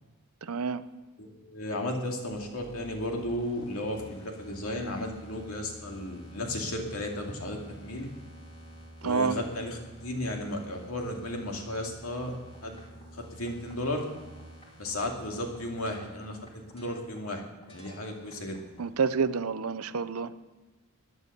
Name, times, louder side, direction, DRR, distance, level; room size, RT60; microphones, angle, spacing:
voice 1, 0.4-0.8 9.0-9.4 18.8-20.3, right 5 dB, 75° right, 14 dB, 0.7 m, -28 dB
voice 2, 1.2-8.1 9.0-12.3 12.6-12.8 13.2-14.1 14.8-16.4 16.7-18.6, left 1 dB, 70° left, 1 dB, 2.4 m, -34 dB
sound 1, 2.3-19.4, right 1 dB, 25° left, 2.6 m, -50 dB
16.5 x 10.0 x 6.7 m, 1.2 s
head